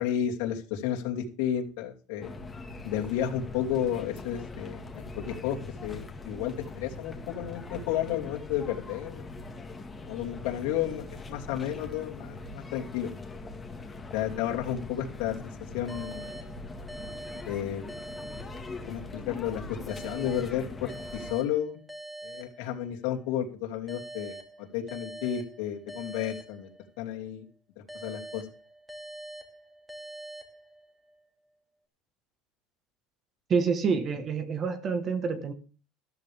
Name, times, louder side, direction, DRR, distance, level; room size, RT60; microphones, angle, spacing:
voice 1, 0.0-2.4 2.8-9.2 10.1-11.0 11.3-13.1 14.1-15.4 15.7-16.2 17.4-17.8 18.9-21.8 22.2-26.7 27.0-27.4 27.9-28.5, left 10 dB, 80° left, 2.9 m, -32 dB
sound 1, 2.2-21.3, left 3 dB, 15° left, 2.0 m, -42 dB
sound 2, 15.9-19.2 19.9-23.2 23.9-27.2 27.9-31.2, right 1 dB, 5° right, 2.4 m, -45 dB
voice 2, 33.5-35.5, right 5 dB, 30° right, 1.5 m, -27 dB
14.0 x 13.5 x 3.6 m
cardioid pair, 155°, 0 cm